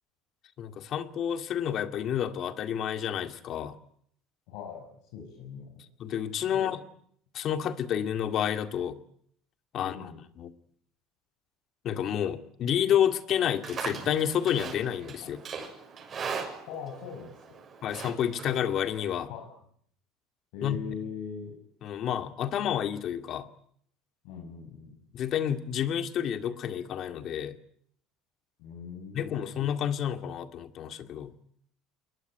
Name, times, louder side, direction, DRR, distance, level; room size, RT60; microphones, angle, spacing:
voice 1, 0.6-3.8 6.0-6.8 7.3-9.0 9.7-10.5 11.8-15.4 17.8-19.3 20.6-20.8 21.8-23.5 25.1-27.6 29.1-31.4, left 9 dB, 45° left, 8 dB, 2.1 m, -30 dB
voice 2, 4.5-5.8 6.5-6.7 9.8-10.2 15.2-15.3 16.7-17.6 19.3-19.5 20.5-21.6 24.2-25.0 28.6-29.7, left 6 dB, 75° left, 0 dB, 7.1 m, -41 dB
Livestock farm animals working animals, 13.4-19.1, right 6 dB, 30° right, 6.7 m, -40 dB
28.5 x 21.5 x 9.3 m, 0.67 s
cardioid pair, 130°, 0 cm